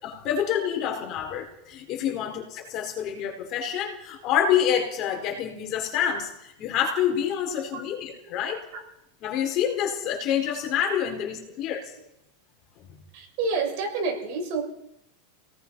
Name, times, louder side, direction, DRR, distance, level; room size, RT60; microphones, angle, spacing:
voice 1, 0.0-8.6 9.2-11.8, left 9 dB, 35° left, 3 dB, 4.5 m, -27 dB
voice 2, 13.1-14.6, right 4 dB, 50° right, 1 dB, 6.4 m, -29 dB
28.5 x 18.5 x 5.6 m, 0.82 s
supercardioid pair, 160°, 0 cm